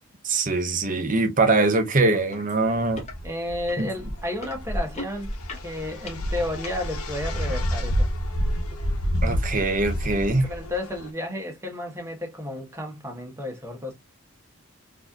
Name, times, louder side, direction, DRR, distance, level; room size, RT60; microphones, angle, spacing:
voice 1, 0.2-3.0 3.8-3.9 9.2-10.5, right 2 dB, 35° right, 0.7 m, -22 dB
sound 1, 2.3-2.4 2.8-3.1 3.7-6.8 7.5-7.6, left 1 dB, 30° left, 1.0 m, -34 dB
sound 2, 2.7-11.1, equal, 85° left, 1.0 m, -29 dB
voice 2, 3.2-5.3 5.6-8.1 10.4-13.9, left 1 dB, 15° right, 1.1 m, -32 dB
4.2 x 2.7 x 2.4 m
head